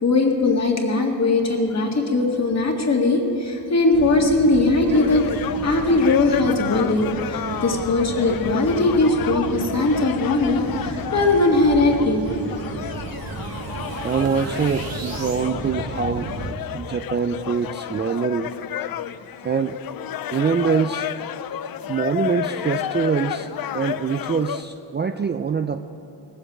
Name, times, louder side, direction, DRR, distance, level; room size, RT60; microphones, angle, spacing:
voice 1, 0.0-5.2 5.6-12.2, left 2 dB, 40° left, 1 dB, 1.9 m, -20 dB
sound 1, 3.9-16.6, right 3 dB, 85° right, 1.5 m, -34 dB
sound 2, 4.9-24.6, left 11 dB, 60° left, 0.5 m, -32 dB
sound 3, 11.6-15.5, right 3 dB, 55° right, 2.2 m, -38 dB
voice 2, 14.0-16.3 16.7-18.5 19.4-19.8 20.3-21.1 21.9-25.8, right 6 dB, 25° right, 7 dB, 0.4 m, -24 dB
18.5 x 8.0 x 7.6 m, 2.8 s
cardioid pair, 110°, 41 cm